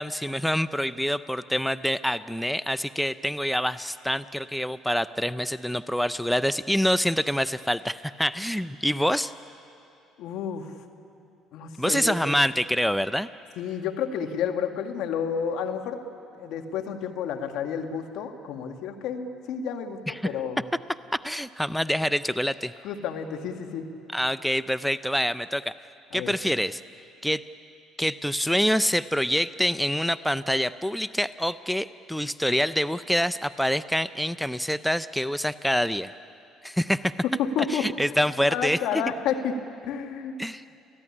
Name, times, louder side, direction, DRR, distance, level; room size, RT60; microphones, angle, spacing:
voice 1, 0.0-9.3 11.8-13.3 20.1-20.2 21.1-22.7 24.1-25.7 26.1-26.8 27.2-27.4 28.0-36.1 36.6-37.1 37.7-39.0 40.4-40.6, equal, ahead, 14 dB, 0.6 m, -26 dB
voice 2, 10.2-10.7 11.5-12.2 13.6-16.0 16.4-20.6 22.8-23.9 26.1-26.3 37.2-37.9 38.5-39.5 39.8-40.4, left 7 dB, 70° left, 5 dB, 1.9 m, -30 dB
30.0 x 15.0 x 9.9 m, 2.7 s
supercardioid pair, 70°, 0 cm